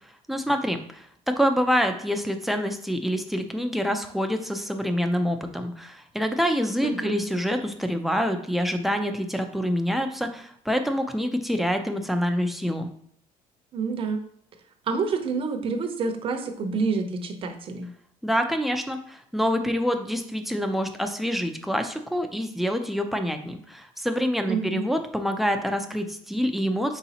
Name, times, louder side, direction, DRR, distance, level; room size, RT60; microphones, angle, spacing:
voice 1, 0.3-12.9 18.2-27.0, equal, ahead, 5 dB, 0.4 m, -26 dB
voice 2, 6.8-7.2 13.7-14.2 14.9-17.9 24.5-24.9, right 4 dB, 40° right, 5 dB, 0.7 m, -28 dB
4.7 x 4.1 x 2.8 m, 0.67 s
cardioid pair, 135°, 14 cm